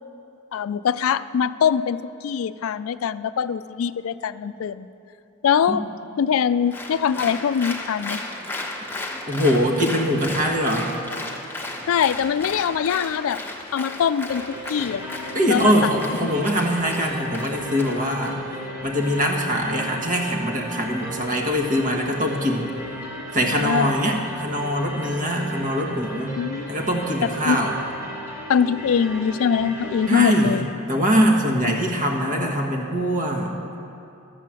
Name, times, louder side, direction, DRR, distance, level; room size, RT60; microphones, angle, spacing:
voice 1, 0.5-4.9 5.4-5.9 6.2-8.2 11.9-13.4 13.7-14.4 14.7-15.1 15.5-15.9 23.4-24.0 26.4-26.7 27.2-27.6 28.5-30.7, left 7 dB, 70° left, 15 dB, 0.3 m, -23 dB
Applause, 6.7-18.3, left 2 dB, 10° left, 1.0 m, -35 dB
voice 2, 9.3-10.9 15.3-18.4 18.8-22.7 23.3-26.4 26.7-27.8 30.1-30.6 30.9-33.8, equal, 40° right, 2 dB, 1.4 m, -22 dB
sound 1, 14.3-30.3, right 1 dB, 10° right, 1.5 m, -36 dB
12.0 x 7.4 x 7.5 m, 2.7 s
head